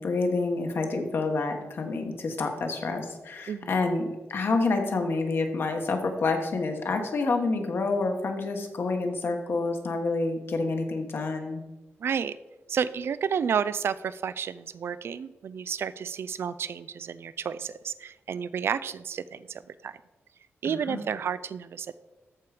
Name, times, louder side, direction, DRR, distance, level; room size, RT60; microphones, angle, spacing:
voice 1, 0.0-11.6 20.6-21.0, left 3 dB, 55° left, 4 dB, 1.2 m, -28 dB
voice 2, 12.0-12.4 12.7-20.0 20.6-22.0, right 7 dB, 65° right, 16 dB, 0.3 m, -31 dB
13.5 x 4.7 x 4.9 m, 1.1 s
wide cardioid pair, 145°, 5 cm